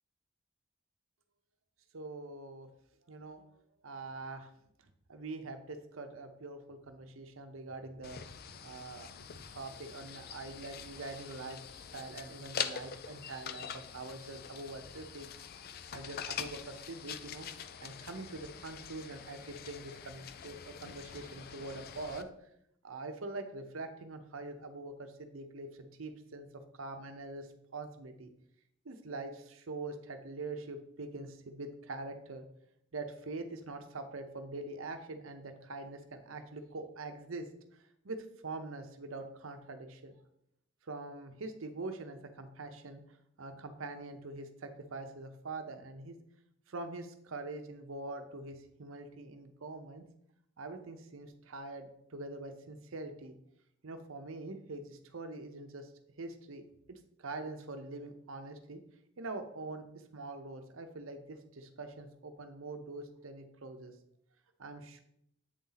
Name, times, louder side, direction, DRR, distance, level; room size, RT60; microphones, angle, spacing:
voice 1, 1.9-2.7 3.1-3.4 3.8-4.5 5.1-15.3 15.9-17.5 17.8-22.3 22.8-26.5 26.7-28.3 28.8-32.5 32.9-37.5 38.0-40.1 40.8-43.0 43.4-46.2 46.7-50.0 50.6-53.3 53.8-55.9 56.2-58.8 59.2-59.8 60.1-63.9 64.6-65.0, right 2 dB, 75° right, 7 dB, 0.8 m, -44 dB
sound 1, 8.0-22.2, left 8 dB, 50° left, 0.4 m, -44 dB
8.1 x 4.2 x 4.0 m, 0.75 s
head